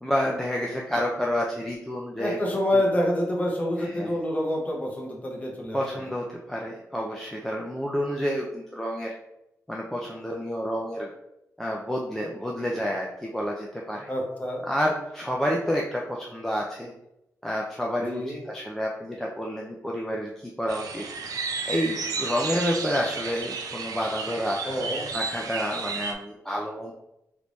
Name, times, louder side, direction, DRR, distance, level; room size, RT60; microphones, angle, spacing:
voice 1, 0.0-2.4 2.7-2.8 3.8-4.1 5.7-9.1 9.7-11.1 11.6-14.1 14.6-16.9 17.4-24.7 25.1-26.9, equal, 5° left, -2 dB, 0.4 m, -29 dB
voice 2, 2.2-5.8 14.1-14.7 18.0-18.4 24.6-25.1, left 1 dB, 25° left, -2 dB, 0.9 m, -27 dB
sound 1, 20.7-26.1, right 4 dB, 90° right, 0.4 m, -33 dB
3.3 x 2.6 x 3.0 m, 0.84 s
wide cardioid pair, 135°, 6 cm